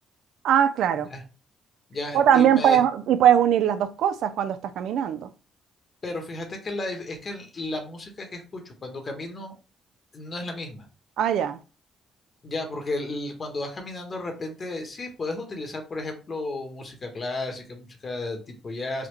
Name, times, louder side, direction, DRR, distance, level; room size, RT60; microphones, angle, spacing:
voice 1, 0.4-1.1 2.1-5.3 11.2-11.6, right 9 dB, 80° right, 0.3 m, -21 dB
voice 2, 1.9-2.8 6.0-9.5 10.1-10.9 12.4-19.1, left 2 dB, 40° left, 1.0 m, -33 dB
3.5 x 2.2 x 3.1 m
cardioid pair, 90°, 0 cm